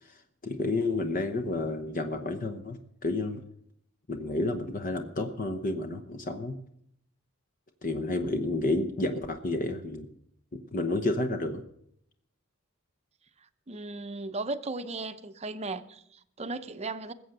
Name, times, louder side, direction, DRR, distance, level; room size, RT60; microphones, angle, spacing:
voice 1, 0.0-3.4 4.1-6.6 7.8-10.1 10.5-11.6, left 2 dB, 40° left, 1.0 m, -30 dB
voice 2, 13.7-17.1, right 3 dB, 30° right, 0.7 m, -36 dB
20.5 x 7.8 x 6.6 m
head